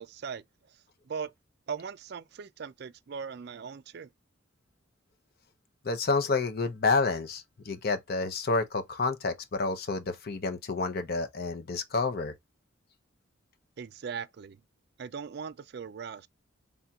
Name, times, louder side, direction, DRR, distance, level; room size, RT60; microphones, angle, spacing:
voice 1, 0.0-1.3 1.7-4.1 13.8-14.6 15.0-16.3, right 6 dB, 55° right, 0.4 m, -39 dB
voice 2, 5.8-12.3, left 3 dB, 50° left, 0.7 m, -29 dB
4.3 x 3.4 x 2.3 m
head